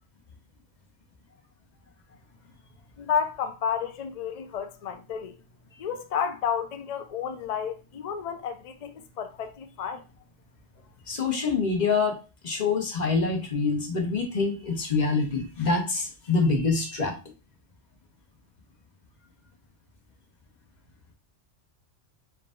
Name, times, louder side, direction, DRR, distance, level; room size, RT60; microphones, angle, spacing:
voice 1, 3.0-5.4 5.8-10.0, left 7 dB, 80° left, 0.3 m, -31 dB
voice 2, 11.1-12.2 12.4-17.2, left 4 dB, 40° left, 1.0 m, -25 dB
4.6 x 2.6 x 3.7 m
omnidirectional pair, 1.2 m